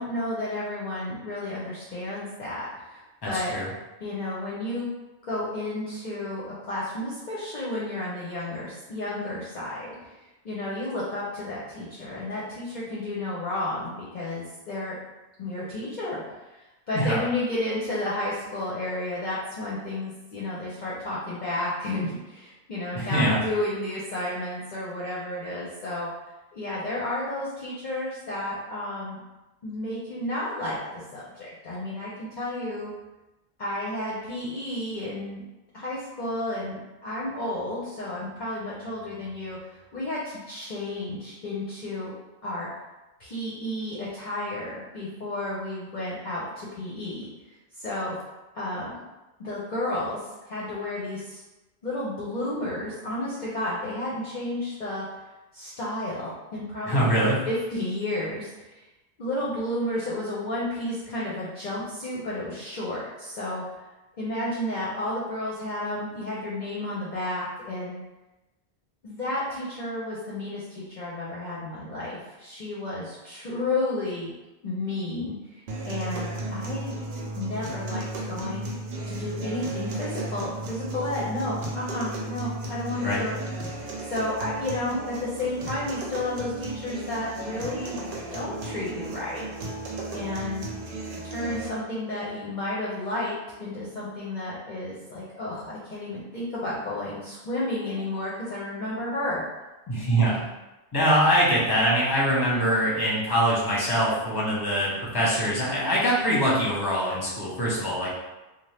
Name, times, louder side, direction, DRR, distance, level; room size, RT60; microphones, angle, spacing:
voice 1, 0.0-3.6 4.0-4.9 5.2-15.0 15.4-16.2 16.5-26.1 26.5-29.2 29.6-32.9 33.6-35.4 35.7-42.1 42.4-42.7 43.2-48.2 48.5-49.0 49.4-51.4 51.8-55.1 55.5-58.8 59.2-63.6 64.2-68.0 69.0-74.3 74.6-76.9 77.3-78.7 79.0-83.4 83.6-83.8 84.1-88.0 88.3-89.4 90.1-90.7 91.2-99.4, left 1 dB, 50° left, -7 dB, 0.7 m, -32 dB
voice 2, 3.2-3.6 16.9-17.2 23.0-23.4 56.9-57.4 83.0-83.2 99.9-100.4 100.9-108.1, equal, 25° left, -6 dB, 0.9 m, -23 dB
sound 1, 75.7-91.7, right 2 dB, 60° right, 0.7 m, -35 dB
2.7 x 2.3 x 3.3 m, 1.1 s
omnidirectional pair, 1.1 m